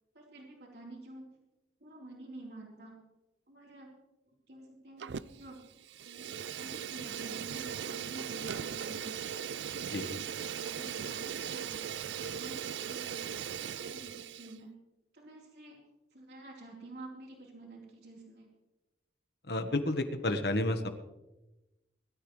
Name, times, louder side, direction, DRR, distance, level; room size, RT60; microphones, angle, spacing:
voice 1, 0.1-1.4 1.8-3.0 3.5-3.9 4.5-6.3 6.6-10.3 10.6-11.9 12.3-13.3 13.6-14.7 15.1-15.8 16.1-18.5, right 2 dB, 65° right, -2 dB, 4.1 m, -49 dB
Fire, 5.0-5.5 5.8-14.6, right 8 dB, 80° right, 0.4 m, -39 dB
voice 2, 19.5-20.9, left 1 dB, 65° left, 8 dB, 1.4 m, -30 dB
21.0 x 13.0 x 3.3 m, 1.0 s
head